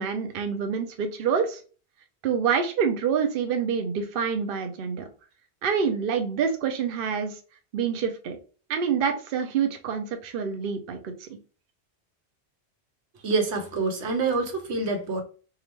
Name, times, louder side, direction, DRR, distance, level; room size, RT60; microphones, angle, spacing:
voice 1, 0.0-1.6 2.2-5.1 5.6-7.4 7.7-8.4 8.7-11.4, right 6 dB, 60° right, 0.7 m, -27 dB
voice 2, 13.2-15.2, right 3 dB, 80° right, 1.1 m, -26 dB
4.7 x 2.4 x 2.9 m
omnidirectional pair, 1.1 m